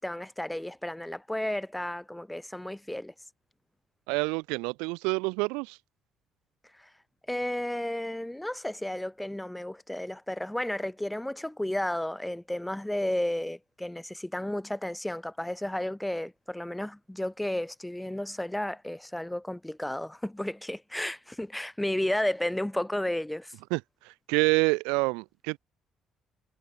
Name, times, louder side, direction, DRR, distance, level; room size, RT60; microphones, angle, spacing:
voice 1, 0.0-3.1 7.3-23.5, left 1 dB, 5° left, 4.9 m, -32 dB
voice 2, 4.1-5.8 23.7-25.6, right 29 dB, 65° right, 1.1 m, -27 dB
figure-of-eight pair, 45°, 0 cm